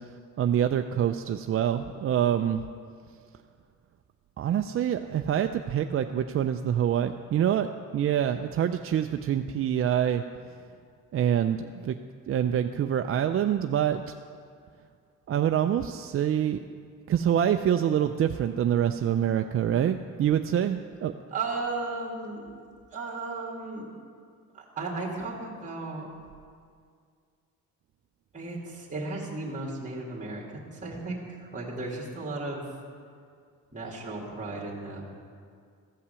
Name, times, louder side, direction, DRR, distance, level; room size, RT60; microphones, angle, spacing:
voice 1, 0.4-2.6 4.4-10.2 11.1-11.9 12.3-14.0 15.3-16.6 17.1-21.1, right 9 dB, 45° right, 7 dB, 0.4 m, -26 dB
voice 2, 21.3-22.6 22.9-23.9 24.5-26.1 28.3-32.6 33.7-35.0, right 3 dB, 25° right, -4 dB, 2.3 m, -35 dB
14.5 x 5.7 x 6.9 m, 2.2 s
cardioid pair, 95°, 33 cm